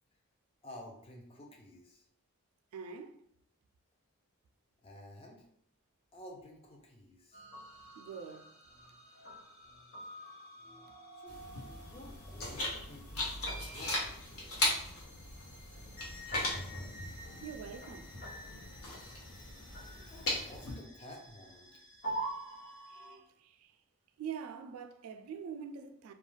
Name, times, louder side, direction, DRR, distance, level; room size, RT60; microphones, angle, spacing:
voice 1, 0.6-2.1 4.8-5.5 6.1-7.4 11.1-11.4 11.8-14.5 19.4-19.5 19.9-21.7, left 1 dB, 25° left, 0.4 m, -52 dB
voice 2, 2.7-3.2 8.0-8.5 17.4-18.1 22.9-23.8 24.2-26.1, right 7 dB, 75° right, 0.3 m, -44 dB
sound 1, 7.3-23.2, right 1 dB, 45° left, 0.8 m, -47 dB
sound 2, 11.3-20.8, left 2 dB, 80° left, 0.7 m, -38 dB
2.3 x 2.2 x 3.1 m
head